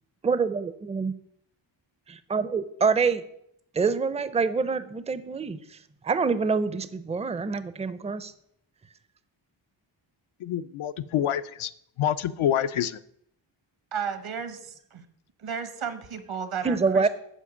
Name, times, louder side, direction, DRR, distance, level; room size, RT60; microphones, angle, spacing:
voice 1, 0.2-1.1 2.1-3.2 3.7-8.3 16.6-17.1, right 5 dB, 15° right, 14 dB, 0.4 m, -26 dB
voice 2, 10.4-11.7 12.0-13.0, left 10 dB, 80° left, 12 dB, 0.6 m, -27 dB
voice 3, 13.9-15.0 15.4-17.1, right 7 dB, 80° right, 10 dB, 1.3 m, -34 dB
7.3 x 5.0 x 7.0 m, 0.73 s
wide cardioid pair, 105°, 48 cm